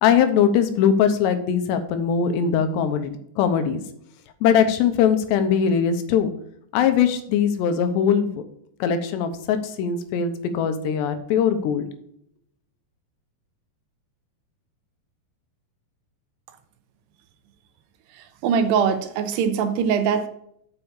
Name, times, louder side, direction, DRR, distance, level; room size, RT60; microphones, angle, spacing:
voice 1, 0.0-3.1 3.4-3.8 4.4-6.3 6.7-8.4 8.8-11.9, left 7 dB, 85° left, 8 dB, 3.0 m, -21 dB
voice 2, 18.4-20.3, right 7 dB, 80° right, 9 dB, 2.7 m, -22 dB
6.9 x 5.8 x 7.1 m, 0.69 s
omnidirectional pair, 4.9 m